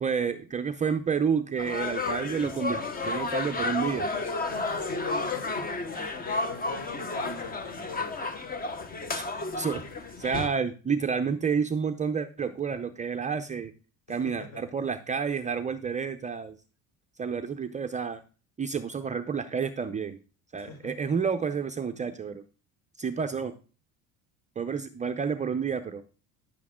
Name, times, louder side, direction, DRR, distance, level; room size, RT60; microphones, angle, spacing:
voice 1, 0.0-4.1 9.1-9.8 10.2-13.7 14.1-16.5 17.2-18.2 18.6-20.2 20.5-22.4 23.0-23.5 24.6-26.0, right 6 dB, 20° right, 7 dB, 0.6 m, -30 dB
sound 1, 1.6-10.5, left 3 dB, 25° left, 1.1 m, -32 dB
voice 2, 4.5-8.2 14.1-14.8 20.5-20.9, left 3 dB, 45° left, 4 dB, 4.2 m, -42 dB
10.5 x 8.3 x 3.7 m, 0.35 s
cardioid pair, 145°, 37 cm